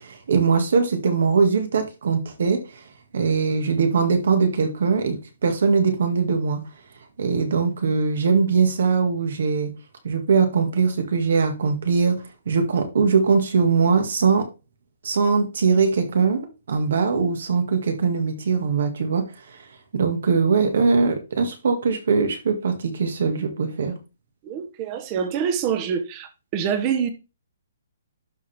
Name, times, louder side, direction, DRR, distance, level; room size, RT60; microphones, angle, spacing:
voice 1, 0.0-2.6 3.1-6.6 7.2-9.7 10.0-12.2 12.5-14.5 15.0-19.2 19.9-24.0, right 5 dB, 60° right, 2.0 m, -21 dB
voice 2, 24.4-27.1, right 7 dB, 20° right, 1.0 m, -26 dB
11.5 x 4.5 x 3.5 m
hypercardioid pair, 170°, 0 cm